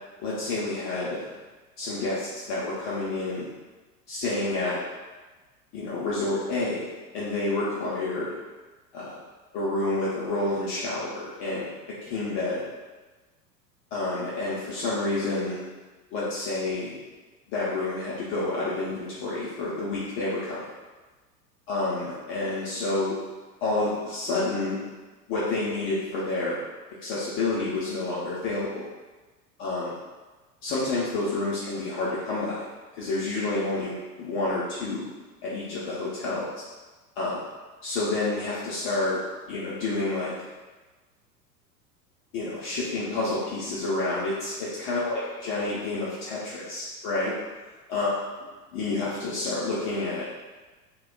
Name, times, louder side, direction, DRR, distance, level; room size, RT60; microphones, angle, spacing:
voice 1, 0.2-1.3 1.8-3.5 4.1-4.8 5.7-8.4 8.9-9.1 9.5-11.7 12.0-12.6 13.9-15.6 16.1-17.0 17.5-20.7 21.7-23.1 23.6-24.8 25.3-26.6 27.0-28.9 29.6-30.0 30.6-32.6 32.9-35.0 35.4-36.5 37.2-37.4 37.8-39.2 39.5-40.3 42.3-47.3 47.9-48.1 48.7-50.2, left 2 dB, 25° left, -7 dB, 0.4 m, -29 dB
2.1 x 2.1 x 3.6 m, 1.2 s
figure-of-eight pair, 85°, 49 cm